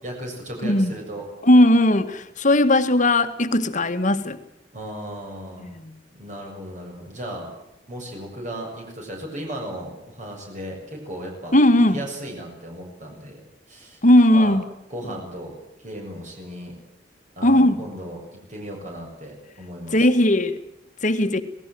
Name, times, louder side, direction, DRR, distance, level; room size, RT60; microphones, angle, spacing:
voice 1, 0.0-1.3 4.7-5.7 6.1-7.5 7.9-11.6 11.9-13.4 13.7-14.0 14.3-14.6 14.9-16.7 17.4-20.1, right 1 dB, 45° right, 7.4 m, -36 dB
voice 2, 1.4-4.4 5.6-5.9 11.5-12.0 14.0-14.6 17.4-17.8 19.9-20.6 21.0-21.4, left 1 dB, 45° left, 1.9 m, -17 dB
27.0 x 19.0 x 7.8 m
head